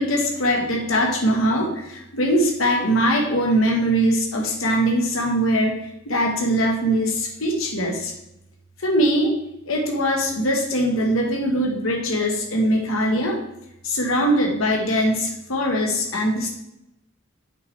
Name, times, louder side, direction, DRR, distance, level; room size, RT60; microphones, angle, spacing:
voice 1, 0.0-8.1 8.8-9.3 9.7-13.4 13.8-16.5, equal, 85° left, 1 dB, 1.4 m, -21 dB
8.4 x 6.0 x 3.3 m, 0.85 s
head